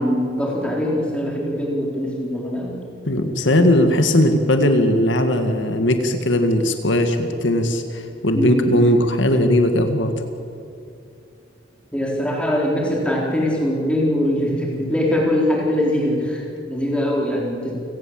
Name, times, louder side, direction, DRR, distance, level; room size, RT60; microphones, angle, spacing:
voice 1, 0.0-2.8 8.3-8.8 11.9-17.7, equal, 5° left, -2 dB, 4.1 m, -22 dB
voice 2, 3.1-10.1, left 1 dB, 85° left, 6 dB, 2.0 m, -18 dB
29.5 x 17.5 x 7.8 m, 2.6 s
head